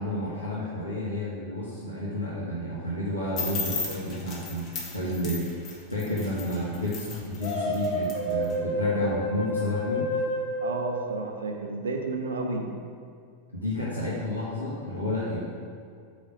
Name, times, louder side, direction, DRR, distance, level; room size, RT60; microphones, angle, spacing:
voice 1, 0.0-4.7 4.9-10.1 13.5-15.4, left 1 dB, 85° left, -7 dB, 1.0 m, -31 dB
sound 1, 3.4-8.5, left 4 dB, 35° left, 1.4 m, -36 dB
sound 2, 7.4-11.6, equal, 50° left, 1.0 m, -29 dB
voice 2, 10.6-12.7, right 3 dB, 65° right, 3 dB, 0.7 m, -31 dB
5.0 x 4.1 x 6.0 m, 2.3 s
figure-of-eight pair, 90°, 0 cm